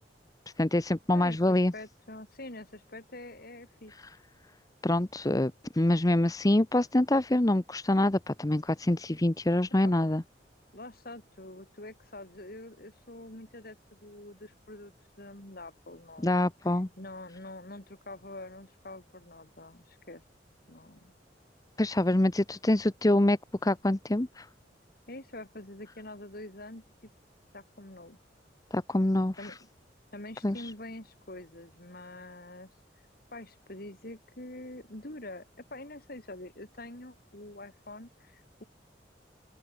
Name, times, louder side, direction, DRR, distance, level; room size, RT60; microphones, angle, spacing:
voice 1, 0.6-1.7 4.8-10.2 16.2-16.9 21.8-24.5 28.7-29.4 30.4-30.6, left 1 dB, 20° left, 0.7 m, -25 dB
voice 2, 1.1-3.9 9.8-9.9 10.7-14.9 15.2-16.5 17.0-20.2 20.7-21.1 25.1-26.8 27.5-28.2 29.4-29.6 30.1-32.7 33.3-38.6, left 2 dB, 55° left, 4.0 m, -45 dB
open air
head